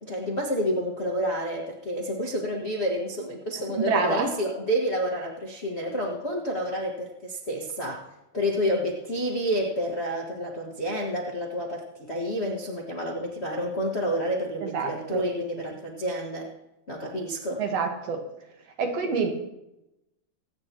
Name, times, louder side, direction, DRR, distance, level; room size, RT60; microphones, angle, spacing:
voice 1, 0.0-8.0 8.3-16.5 16.9-17.6, equal, 30° left, -3 dB, 1.2 m, -29 dB
voice 2, 3.8-4.3 14.6-15.2 17.6-18.2 18.8-19.3, right 5 dB, 55° right, 3 dB, 2.4 m, -27 dB
25.0 x 9.5 x 3.0 m, 0.90 s
omnidirectional pair, 3.9 m